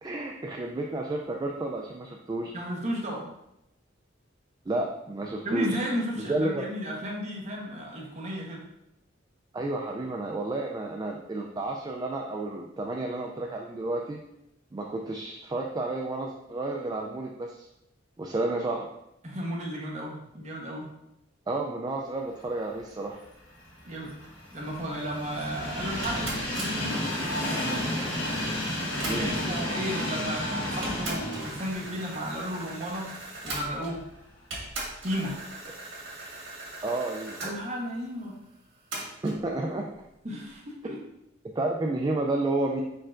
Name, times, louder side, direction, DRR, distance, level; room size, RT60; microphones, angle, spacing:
voice 1, 0.0-2.5 4.7-5.8 6.2-6.7 9.5-14.2 14.7-17.7 18.2-18.9 21.5-23.2 29.0-29.3 36.8-37.4 39.2-39.9 41.6-42.8, right 2 dB, 20° right, 0 dB, 0.3 m, -31 dB
voice 2, 2.5-3.3 5.4-8.6 19.2-20.9 23.8-24.1 24.5-27.0 29.2-33.1 33.4-34.0 35.0-35.3 37.4-38.3 40.2-41.0, equal, 40° right, -2 dB, 1.0 m, -33 dB
Train, 23.5-33.6 34.1-34.2 35.3-35.4, left 1 dB, 75° left, 1.6 m, -32 dB
sound 1, 26.0-29.6 30.3-30.4 30.8-34.1 34.5-37.5 38.9-39.4, right 2 dB, 85° right, 1.7 m, -39 dB
4.5 x 4.4 x 2.5 m, 0.84 s
head